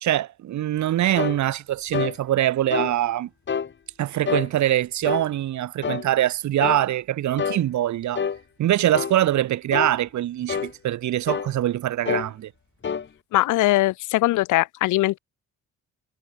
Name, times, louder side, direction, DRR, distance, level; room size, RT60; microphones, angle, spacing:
voice 1, 0.0-3.3 4.0-8.2 8.6-12.5, right 13 dB, 70° right, 1.4 m, -23 dB
sound 1, 1.2-1.4 1.9-2.2 2.7-2.9 3.5-3.7 4.3-4.5 5.0-5.3 5.8-6.1 6.6-6.8 7.4-7.6 8.2-8.4 8.9-9.2 9.7-10.0 10.5-10.7 11.3-11.5 12.1-12.3 12.8-13.1, left 6 dB, 40° left, 1.7 m, -27 dB
voice 2, 13.3-15.2, left 17 dB, 85° left, 0.7 m, -21 dB
cardioid pair, 90°, 30 cm